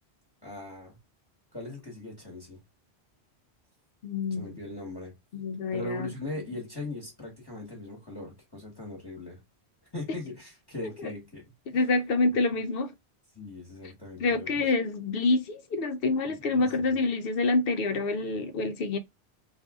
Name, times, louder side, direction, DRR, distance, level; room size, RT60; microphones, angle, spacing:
voice 1, 0.4-1.0 1.5-2.6 4.3-5.1 5.7-9.4 9.9-11.4 11.7-11.8 13.3-14.6 16.2-17.0, left 2 dB, 20° left, 1.2 m, -39 dB
voice 2, 4.0-4.5 5.3-6.1 10.8-11.1 11.7-12.9 14.2-19.0, left 3 dB, 65° left, 0.8 m, -27 dB
2.6 x 2.5 x 3.5 m
omnidirectional pair, 1.1 m